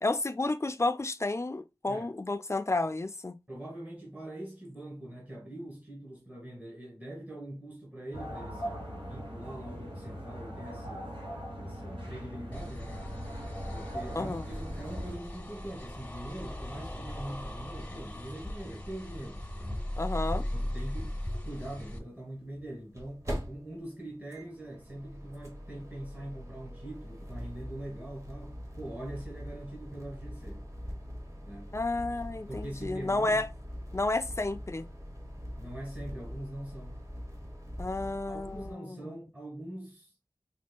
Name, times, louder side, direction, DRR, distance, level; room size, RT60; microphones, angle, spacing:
voice 1, 0.0-3.4 14.1-14.4 20.0-20.5 31.7-33.5 33.9-34.9 37.8-39.1, left 2 dB, 30° left, 0.4 m, -31 dB
voice 2, 3.5-11.1 11.6-13.0 13.7-19.9 20.5-21.1 21.4-30.6 31.4-31.7 32.3-33.4 35.6-37.0 38.3-40.4, right 1 dB, 20° right, 1.4 m, -43 dB
sound 1, 8.1-15.1, equal, 75° right, 1.5 m, -40 dB
sound 2, 12.5-22.0, left 1 dB, 15° left, 0.8 m, -38 dB
sound 3, 20.1-20.2 20.4-20.5 22.4-38.7, equal, 35° right, 1.1 m, -43 dB
5.2 x 2.6 x 2.2 m
wide cardioid pair, 50°, 9 cm